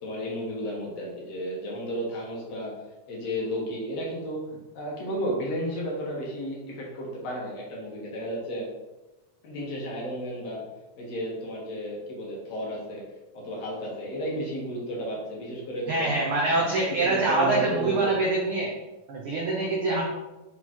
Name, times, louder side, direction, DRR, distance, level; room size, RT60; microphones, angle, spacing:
voice 1, 0.0-2.7 3.1-4.5 4.7-8.7 9.4-10.6 11.0-13.0 13.3-16.1 16.5-18.2 19.9-20.0, equal, 60° left, -3 dB, 2.2 m, -33 dB
voice 2, 15.9-18.7 19.1-20.0, right 3 dB, 85° right, -2 dB, 1.1 m, -25 dB
6.2 x 4.0 x 4.3 m, 1.1 s
omnidirectional pair, 3.7 m